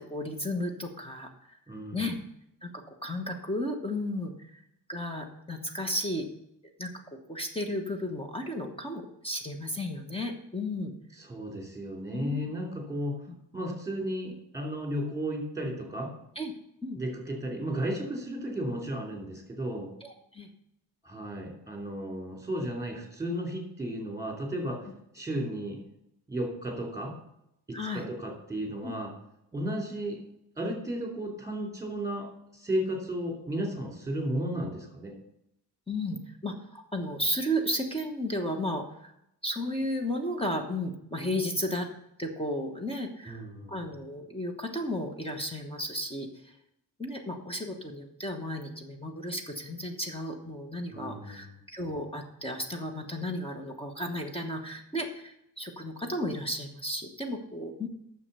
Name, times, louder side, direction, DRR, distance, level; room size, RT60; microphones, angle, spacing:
voice 1, 0.0-1.6 1.9-2.2 2.6-4.6 4.9-6.3 6.8-6.9 7.3-10.9 12.1-12.4 16.3-16.5 16.8-17.0 20.0-20.5 27.7-28.0 28.8-28.9 35.9-39.1 39.4-41.9 42.2-43.4 43.7-46.5 47.0-57.9, left 1 dB, 15° left, 3 dB, 1.1 m, -34 dB
voice 2, 1.7-2.1 11.2-13.2 13.5-16.1 16.9-19.9 21.0-24.8 25.1-25.8 26.3-27.1 27.7-29.1 29.5-30.2 30.6-35.1 43.3-43.7 50.9-51.5, equal, 10° right, 0 dB, 2.9 m, -34 dB
9.6 x 7.1 x 6.8 m, 0.78 s
wide cardioid pair, 180°, 40 cm